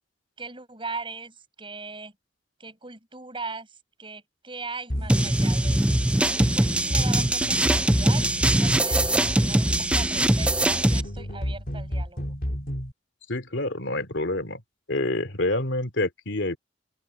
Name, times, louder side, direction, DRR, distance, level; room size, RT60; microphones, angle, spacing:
voice 1, 0.4-2.1 2.6-5.8 6.4-12.2, right 3 dB, 30° right, 7.8 m, -39 dB
sound 1, 4.9-12.9, equal, 50° left, 3.1 m, -31 dB
sound 2, 5.1-11.0, right 1 dB, 5° right, 0.4 m, -22 dB
voice 2, 13.3-14.6 14.9-16.6, left 2 dB, 85° left, 2.8 m, -27 dB
open air
head